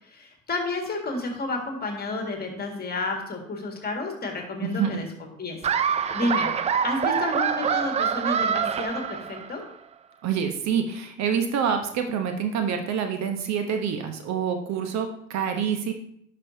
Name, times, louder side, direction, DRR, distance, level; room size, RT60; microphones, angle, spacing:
voice 1, 0.0-5.1 5.4-6.5 6.8-9.6, left 2 dB, 25° left, 2 dB, 1.9 m, -31 dB
voice 2, 4.6-5.0 10.2-15.9, right 7 dB, 45° right, 6 dB, 1.0 m, -27 dB
Laughter, 5.6-9.7, right 7 dB, 20° right, 0.3 m, -25 dB
10.5 x 5.5 x 2.7 m, 0.69 s
hypercardioid pair, 65°, 37 cm